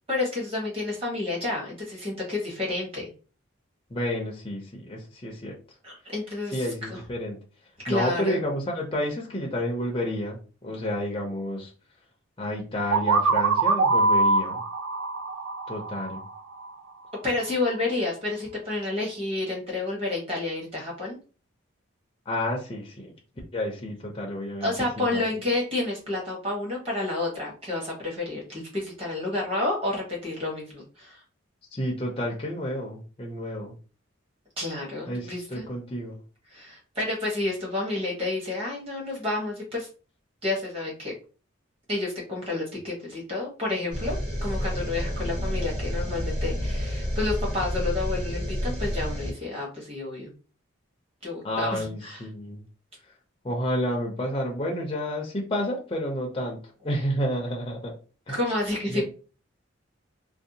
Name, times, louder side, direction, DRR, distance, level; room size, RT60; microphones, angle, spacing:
voice 1, 0.1-3.1 5.8-7.0 7.8-8.4 17.2-21.2 24.6-31.2 34.6-35.6 36.5-39.9 40.4-41.1 41.9-50.3 51.2-52.2 58.3-59.0, left 2 dB, 30° right, -3 dB, 1.0 m, -30 dB
voice 2, 3.9-5.6 6.5-7.4 7.9-11.7 12.4-14.6 15.7-16.2 22.3-23.1 23.5-24.7 25.0-25.2 31.7-33.7 35.1-36.2 51.4-52.6 53.4-57.9 58.3-58.4 58.9-59.0, equal, 25° left, -1 dB, 0.4 m, -30 dB
sound 1, 12.9-16.7, right 3 dB, 85° right, 0.4 m, -23 dB
sound 2, 43.9-49.3, equal, 45° right, 1.3 m, -29 dB
2.6 x 2.1 x 2.7 m, 0.36 s
head